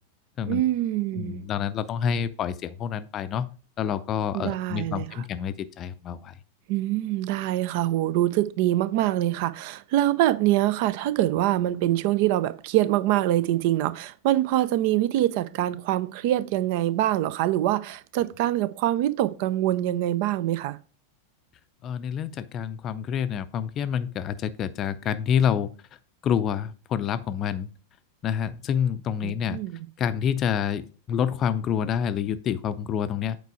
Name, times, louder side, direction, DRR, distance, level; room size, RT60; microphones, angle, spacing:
voice 1, 0.5-1.4 4.3-5.2 6.7-20.8 29.2-29.9, right 14 dB, 45° right, 0.5 m, -24 dB
voice 2, 1.1-3.5 3.8-6.4 21.8-25.7 26.2-27.7 28.2-29.6 30.0-33.4, left 8 dB, 30° left, 0.5 m, -27 dB
8.1 x 4.6 x 4.7 m
figure-of-eight pair, 90°, 0 cm